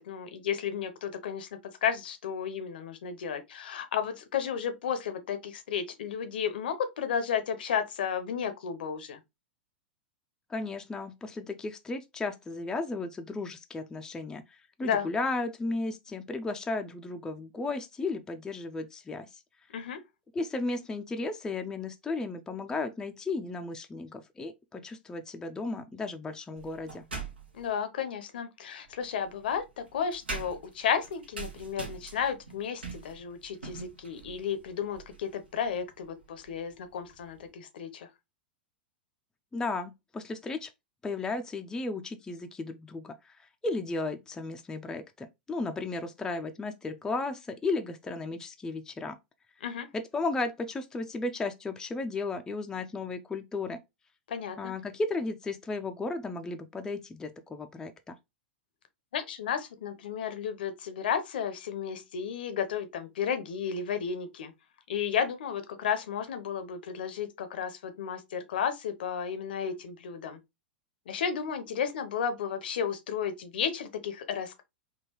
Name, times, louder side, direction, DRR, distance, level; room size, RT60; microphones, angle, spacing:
voice 1, 0.0-9.2 14.8-15.1 19.7-20.0 27.5-38.1 49.6-49.9 54.3-54.7 59.1-64.5 64.9-70.4 71.1-74.6, left 7 dB, 65° left, 0.6 m, -33 dB
voice 2, 10.5-19.3 20.3-27.0 39.5-40.7 41.0-49.2 49.9-53.8 54.6-58.2, left 3 dB, 10° left, 0.4 m, -34 dB
sound 1, 26.5-27.7 28.8-37.5, right 4 dB, 80° right, 1.0 m, -44 dB
3.7 x 2.3 x 2.9 m
figure-of-eight pair, 100°, 6 cm